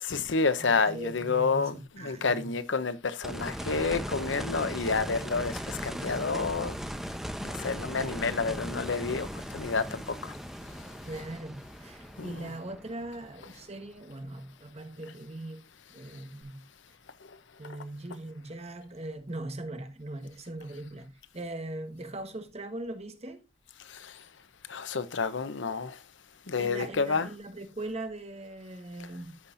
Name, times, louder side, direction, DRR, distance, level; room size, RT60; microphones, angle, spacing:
voice 1, 0.0-6.7 7.4-9.3 9.5-10.3 12.2-12.5 23.9-24.1 24.7-26.0 26.5-27.3, left 4 dB, 90° left, 0.8 m, -29 dB
voice 2, 0.6-2.5 11.1-15.6 15.9-16.6 17.6-23.5 26.6-29.4, right 1 dB, 35° right, 1.3 m, -40 dB
sound 1, 3.2-14.1 16.4-16.5, equal, ahead, 0.8 m, -38 dB
14.0 x 5.7 x 2.6 m
head